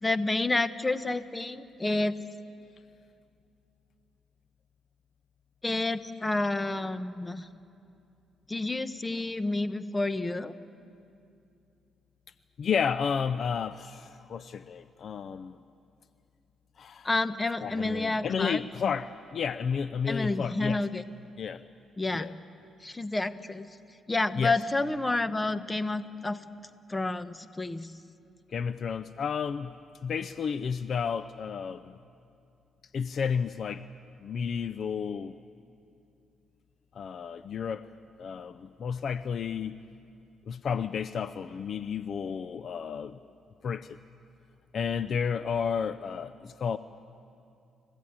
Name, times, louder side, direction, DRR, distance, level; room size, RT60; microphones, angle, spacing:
voice 1, 0.0-2.1 5.6-7.5 8.5-10.5 17.0-18.6 20.1-21.0 22.0-22.3 22.8-23.7 24.1-26.4 26.9-27.9, left 2 dB, 15° left, 12 dB, 1.0 m, -29 dB
voice 2, 12.6-15.6 16.8-17.1 17.6-20.8 21.4-21.6 22.1-22.3 24.3-24.6 28.5-29.7 30.0-32.0 32.9-33.8 34.2-35.4 36.9-37.9 38.2-39.8 40.5-43.2 43.6-44.0 44.7-46.8, left 6 dB, 55° left, 14 dB, 0.5 m, -32 dB
29.5 x 15.5 x 8.7 m, 2.6 s
cardioid pair, 90°, 0 cm